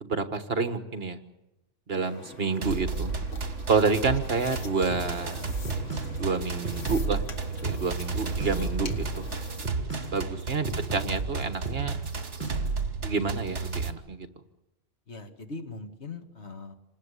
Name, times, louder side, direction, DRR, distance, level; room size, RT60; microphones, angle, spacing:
voice 1, 0.0-1.2 1.9-3.2 3.7-5.4 6.2-7.2 7.6-9.3 10.1-12.0 13.0-14.3, right 4 dB, 55° right, 10 dB, 1.6 m, -28 dB
sound 1, 1.9-9.7, left 4 dB, 85° left, 2.0 m, -44 dB
sound 2, 2.6-13.9, right 4 dB, 70° right, 2.0 m, -33 dB
sound 3, 4.9-12.8, right 3 dB, 40° right, 7.1 m, -36 dB
voice 2, 15.1-16.7, left 3 dB, 65° left, 5 dB, 2.3 m, -41 dB
27.0 x 19.0 x 8.4 m, 0.95 s
omnidirectional pair, 1.2 m